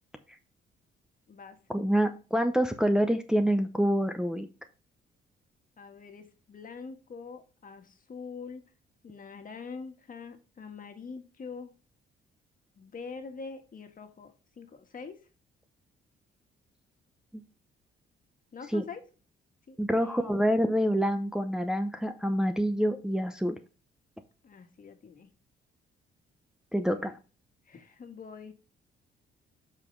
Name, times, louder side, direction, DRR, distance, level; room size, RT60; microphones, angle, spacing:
voice 1, 1.7-4.5 17.3-17.4 18.7-18.8 19.8-23.6 26.7-27.1, equal, 5° right, 6 dB, 0.8 m, -26 dB
voice 2, 5.8-8.6 9.0-11.7 12.8-15.2 18.5-19.0 19.7-20.3 24.4-25.3 27.7-28.5, left 5 dB, 45° left, 6 dB, 1.7 m, -44 dB
7.5 x 4.9 x 3.8 m, 0.33 s
cardioid pair, 90°, 20 cm